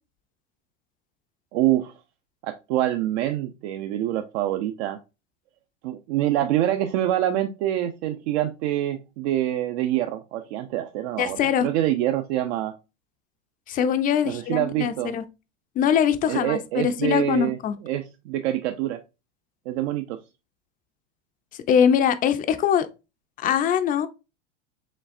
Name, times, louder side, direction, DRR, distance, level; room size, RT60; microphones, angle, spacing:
voice 1, 1.5-1.9 2.4-5.0 5.8-12.7 14.2-15.1 16.3-19.0 19.7-20.2, right 13 dB, 60° right, 0.5 m, -26 dB
voice 2, 11.2-11.7 13.7-15.2 15.8-17.8 21.7-22.9 23.4-24.1, left 8 dB, 25° left, 0.4 m, -22 dB
5.1 x 3.3 x 2.5 m
hypercardioid pair, 110°, 37 cm